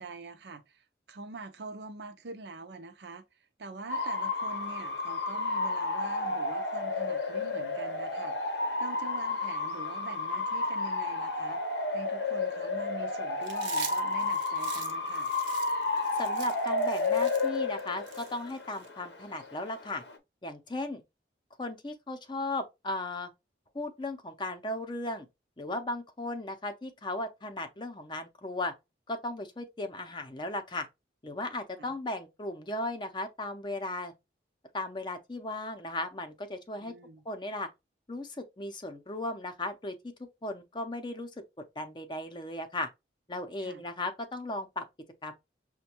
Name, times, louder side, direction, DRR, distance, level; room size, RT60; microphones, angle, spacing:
voice 1, 0.0-8.4 8.8-11.6 11.9-15.3 31.8-31.9 36.8-37.2 43.6-43.8, right 3 dB, 65° right, 0.5 m, -45 dB
Bark / Motor vehicle (road) / Siren, 3.9-20.2, left 3 dB, 75° left, 0.7 m, -32 dB
Chewing mastication, 13.4-18.9, right 8 dB, 85° right, 0.8 m, -44 dB
voice 2, 16.2-20.0 20.4-21.0 21.6-23.3 23.7-25.3 25.6-28.7 29.1-30.9 31.2-34.1 34.7-36.9 37.3-37.7 38.1-39.9 40.4-41.3 41.8-42.9 43.3-44.8 45.2-45.3, left 2 dB, 25° left, 0.6 m, -36 dB
6.0 x 2.2 x 2.9 m
head